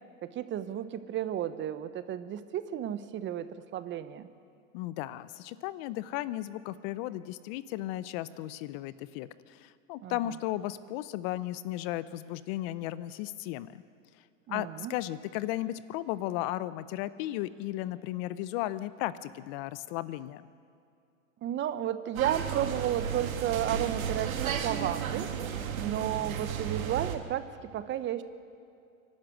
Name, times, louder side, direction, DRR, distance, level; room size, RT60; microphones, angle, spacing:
voice 1, 0.2-4.3 10.0-10.2 14.5-14.9 21.4-25.3 25.8-27.5 27.7-28.2, right 11 dB, 30° right, 13 dB, 0.9 m, -33 dB
voice 2, 4.7-13.8 14.5-20.5, left 15 dB, 45° left, 16 dB, 0.7 m, -35 dB
sound 1, 22.1-27.2, right 8 dB, 85° right, 1.9 m, -33 dB
24.0 x 12.0 x 9.2 m, 2.4 s
hypercardioid pair, 115°, 40 cm